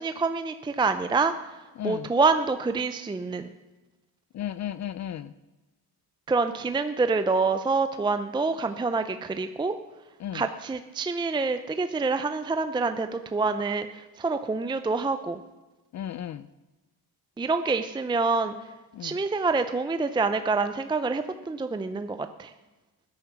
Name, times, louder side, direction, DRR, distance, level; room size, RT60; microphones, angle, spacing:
voice 1, 0.0-1.3 1.8-3.5 6.3-9.7 10.3-13.9 14.2-15.4 17.4-18.6 19.0-22.5, right 4 dB, 15° right, 9 dB, 0.5 m, -26 dB
voice 2, 1.8-2.1 4.3-5.3 10.2-10.4 15.9-16.5 18.9-19.2, left 11 dB, 50° left, 15 dB, 0.4 m, -34 dB
15.0 x 9.9 x 5.9 m, 1.1 s
cardioid pair, 145°, 37 cm